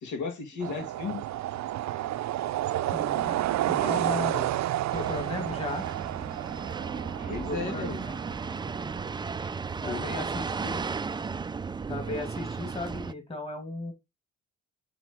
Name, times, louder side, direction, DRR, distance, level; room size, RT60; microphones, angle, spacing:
voice 1, 0.0-1.2 7.2-8.0 9.9-10.0, left 4 dB, 75° left, 2.0 m, -34 dB
sound 1, 0.6-9.1, right 14 dB, 65° right, 0.5 m, -31 dB
voice 2, 2.9-3.4 3.7-4.5 4.9-5.8 7.5-8.2 9.8-10.9 11.9-13.9, left 2 dB, 20° left, 2.6 m, -36 dB
sound 2, 4.9-13.1, right 5 dB, 15° right, 0.3 m, -35 dB
7.0 x 3.4 x 4.5 m
cardioid pair, 90°, 30 cm